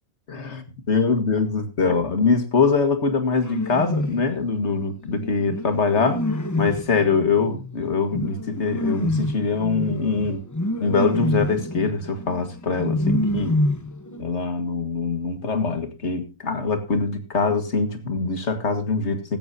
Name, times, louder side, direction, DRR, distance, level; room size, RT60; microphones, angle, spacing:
voice 1, 0.9-10.4 10.8-13.6 14.2-19.4, left 4 dB, 55° left, 8 dB, 2.0 m, -23 dB
sound 1, 3.3-4.3 5.0-14.2, left 1 dB, 15° left, 0.7 m, -27 dB
16.0 x 13.0 x 2.7 m, 0.26 s
omnidirectional pair, 1.4 m